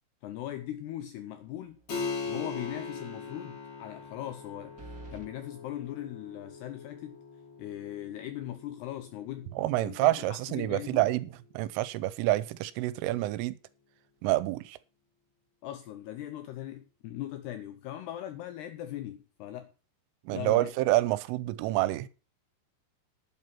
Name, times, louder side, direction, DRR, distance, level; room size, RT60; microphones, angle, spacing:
voice 1, 0.2-1.8 2.3-4.8 5.1-7.2 7.6-9.5 9.8-11.1 15.6-19.7 20.3-20.7, left 12 dB, 85° left, 2.4 m, -39 dB
sound 1, 1.6-2.1 2.5-2.6 4.8-5.3, right 3 dB, 50° right, 1.0 m, -47 dB
Keyboard (musical), 1.9-12.1, left 4 dB, 40° left, 4.8 m, -42 dB
voice 2, 9.6-11.3 11.5-13.6 14.2-14.8 20.3-22.1, right 17 dB, 85° right, 3.2 m, -28 dB
11.0 x 8.5 x 5.9 m
omnidirectional pair, 5.6 m